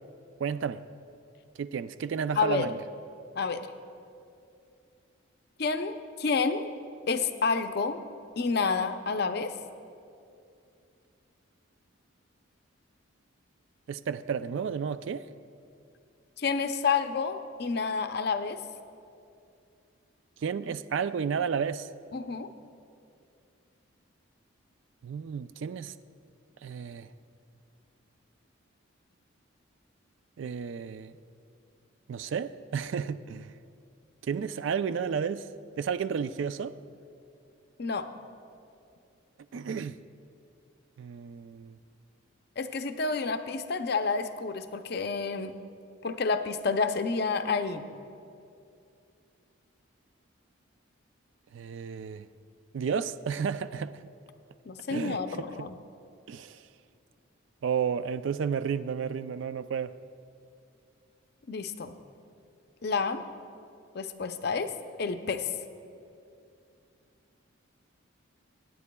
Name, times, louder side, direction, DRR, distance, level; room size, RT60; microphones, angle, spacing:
voice 1, 0.4-0.8 1.6-2.8 13.9-15.3 20.4-21.9 25.0-25.9 26.6-27.1 30.4-31.2 32.1-33.5 34.2-35.5 35.8-36.7 39.5-39.9 41.0-41.8 51.5-52.3 52.7-53.9 54.9-55.5 56.3-56.6 57.6-59.9, right 6 dB, 65° right, 0.3 m, -32 dB
voice 2, 2.4-2.7 3.4-3.6 5.6-6.7 7.1-8.0 8.4-9.6 16.4-18.6 22.1-22.5 37.8-38.1 42.6-45.6 46.0-47.8 54.7-55.8 61.5-61.9 62.8-63.2 63.9-64.7 65.0-65.5, left 4 dB, 50° left, 0.5 m, -29 dB
24.5 x 9.6 x 2.2 m
head